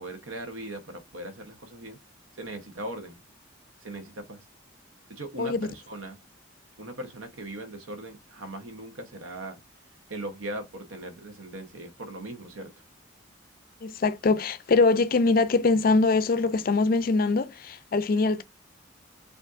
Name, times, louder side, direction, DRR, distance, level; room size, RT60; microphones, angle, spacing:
voice 1, 0.0-2.0 2.3-3.2 3.8-4.5 5.1-6.2 6.8-9.6 10.1-12.7, right 1 dB, 90° right, 1.0 m, -39 dB
voice 2, 13.8-18.4, left 3 dB, 45° left, 0.4 m, -23 dB
5.0 x 2.6 x 2.5 m
head